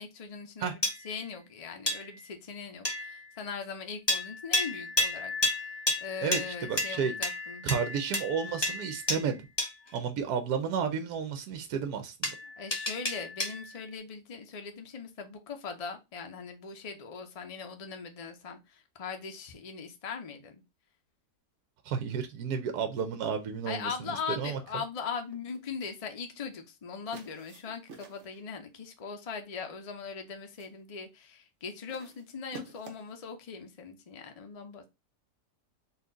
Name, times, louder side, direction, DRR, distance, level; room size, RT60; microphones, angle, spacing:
voice 1, 0.0-5.7 6.0-7.6 12.6-20.6 23.7-34.9, left 5 dB, 70° left, 0.3 m, -40 dB
sound 1, 0.8-1.3 1.9-2.3 2.8-3.3 4.1-10.0 12.2-13.8, left 2 dB, 20° left, 0.8 m, -32 dB
voice 2, 6.2-7.1 7.6-9.4 9.9-12.3 21.8-24.6, right 6 dB, 75° right, 1.1 m, -32 dB
sound 2, 25.3-25.7 27.1-28.5 29.5-29.8 30.2-30.8 31.9-33.2, right 3 dB, 50° right, 1.1 m, -50 dB
4.2 x 2.5 x 3.8 m
omnidirectional pair, 1.7 m